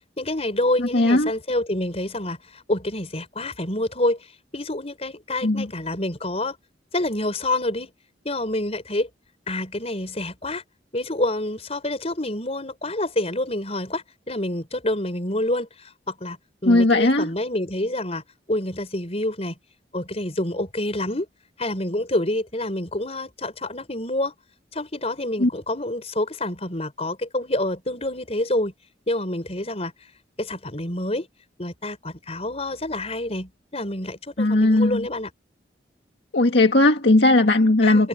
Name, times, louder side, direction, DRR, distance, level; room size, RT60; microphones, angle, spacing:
voice 1, 0.2-4.2 4.5-6.6 6.9-7.9 8.3-9.1 9.5-10.6 10.9-16.4 16.6-18.2 18.5-19.6 19.9-21.3 21.6-24.3 24.7-28.7 29.1-29.9 30.4-31.3 31.6-35.3 37.8-38.1, left 1 dB, 35° left, 5.4 m, -27 dB
voice 2, 0.8-1.3 5.4-5.7 16.7-17.3 25.4-25.5 34.4-35.1 36.3-38.1, left 2 dB, 70° left, 1.8 m, -18 dB
head